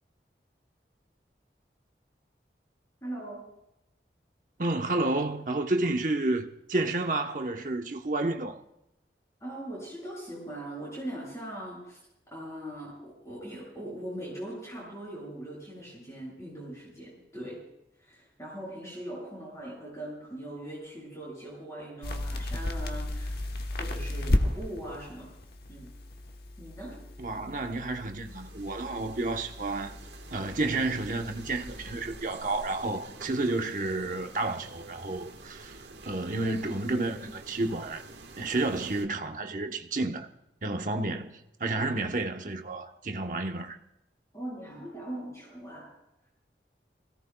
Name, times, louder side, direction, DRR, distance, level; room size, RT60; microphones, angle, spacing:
voice 1, 3.0-3.5 9.4-12.0 12.3-17.6 18.0-23.4 23.7-25.3 25.7-26.0 26.6-27.1 44.3-45.9, right 1 dB, 15° left, 7.6 m, -40 dB
voice 2, 4.6-8.6 27.2-30.0 30.3-35.8 36.0-38.0 38.4-40.3 40.6-43.8, right 2 dB, 45° right, 1.0 m, -31 dB
sound 1, 22.0-32.2, left 1 dB, 60° left, 1.2 m, -35 dB
sound 2, 28.3-39.1, right 2 dB, 85° right, 1.5 m, -48 dB
27.0 x 17.0 x 2.3 m
head